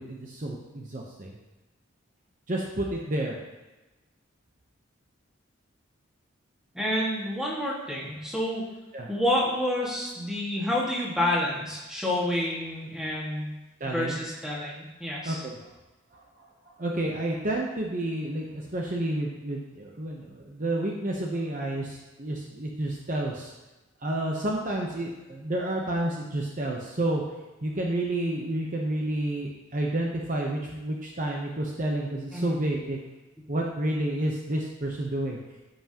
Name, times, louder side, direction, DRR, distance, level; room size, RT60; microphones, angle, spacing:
voice 1, 0.0-1.3 2.5-3.4 8.9-9.1 13.8-14.2 15.2-15.5 16.1-16.2 16.8-23.5 24.0-27.2 27.6-33.0 33.5-35.4, right 1 dB, 40° right, -1 dB, 0.8 m, -30 dB
voice 2, 6.7-8.6 9.1-13.5 13.8-15.4 32.3-32.6, left 1 dB, 5° right, -6 dB, 1.8 m, -29 dB
14.0 x 5.7 x 2.9 m, 1.1 s
head